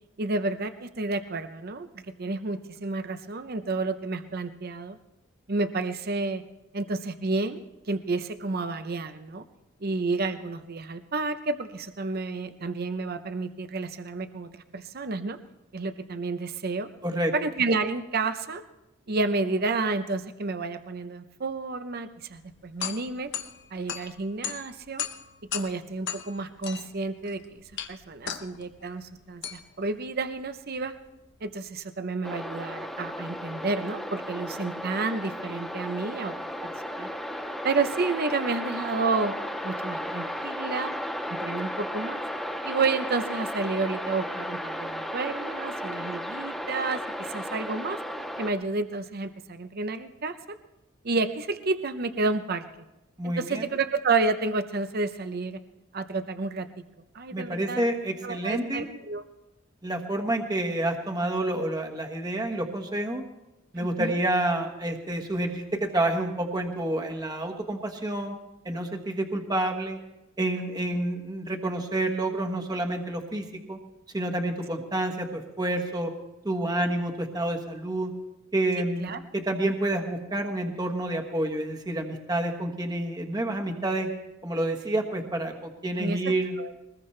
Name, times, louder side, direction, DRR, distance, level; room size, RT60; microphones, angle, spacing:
voice 1, 0.2-1.9 2.2-5.0 5.5-6.4 6.7-7.6 7.9-9.4 9.8-15.4 15.7-16.9 17.3-18.6 19.1-23.3 23.7-25.0 25.5-27.6 27.9-30.9 31.4-36.4 36.6-37.1 37.6-39.3 39.6-40.9 41.3-42.2 42.6-48.0 48.4-50.3 51.0-52.6 53.2-55.6 55.9-56.7 57.1-57.8 58.2-59.2 63.8-64.2 70.8-70.9 79.0-79.2 86.0-86.2 86.6-86.7, right 3 dB, 50° right, 10 dB, 0.7 m, -30 dB
voice 2, 17.0-17.3 53.2-53.7 57.3-58.9 59.8-63.2 63.7-68.3 68.6-70.0 70.4-73.8 74.1-76.1 76.4-78.1 78.5-84.1 84.4-86.5, right 1 dB, 20° right, 2 dB, 1.3 m, -29 dB
sound 1, 22.3-31.5, left 9 dB, 60° left, 1.0 m, -38 dB
sound 2, 32.2-48.5, equal, ahead, 1.4 m, -34 dB
21.5 x 20.0 x 3.3 m, 0.97 s
head